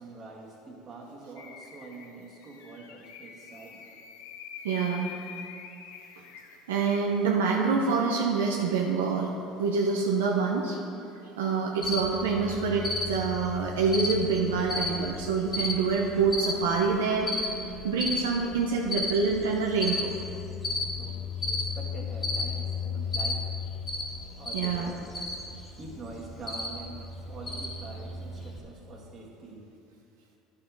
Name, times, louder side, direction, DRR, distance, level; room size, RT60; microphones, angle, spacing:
voice 1, 0.0-3.8 20.9-23.4 24.4-25.0 25.8-29.6, right 3 dB, 40° right, -2 dB, 1.9 m, -45 dB
sound 1, 1.4-6.9, left 7 dB, 75° left, 0.6 m, -45 dB
voice 2, 4.6-5.1 6.7-9.3 9.6-10.8 11.4-17.5 17.8-20.1 24.5-24.9, right 5 dB, 85° right, 0 dB, 0.7 m, -26 dB
Cricket, 11.8-28.6, left 3 dB, 30° left, 1.8 m, -34 dB
9.8 x 5.9 x 4.7 m, 2.7 s
hypercardioid pair, 75°, 0 cm